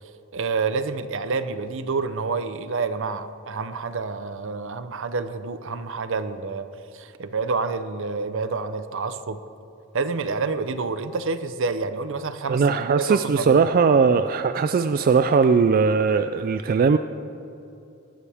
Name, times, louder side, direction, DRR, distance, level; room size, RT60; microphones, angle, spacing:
voice 1, 0.3-6.7 6.9-9.4 9.9-12.6 12.9-13.6, right 4 dB, 65° right, 11 dB, 0.7 m, -28 dB
voice 2, 12.5-17.0, right 5 dB, 45° right, 10 dB, 0.3 m, -19 dB
19.0 x 13.0 x 3.5 m, 2.9 s
head